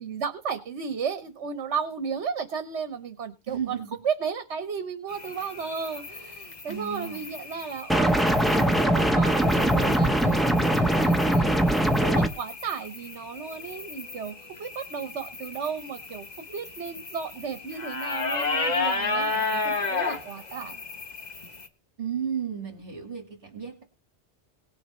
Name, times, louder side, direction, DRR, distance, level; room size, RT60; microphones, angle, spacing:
voice 1, 0.0-3.7 4.0-20.8, right 6 dB, 70° right, 9 dB, 1.3 m, -34 dB
voice 2, 3.5-4.0 6.7-7.3 22.0-23.8, right 7 dB, 50° right, 3 dB, 2.3 m, -33 dB
sound 1, 5.1-21.7, left 3 dB, 40° left, 1.2 m, -34 dB
sound 2, 7.9-12.3, right 1 dB, ahead, 0.8 m, -22 dB
18.5 x 6.5 x 4.3 m, 0.30 s
omnidirectional pair, 1.2 m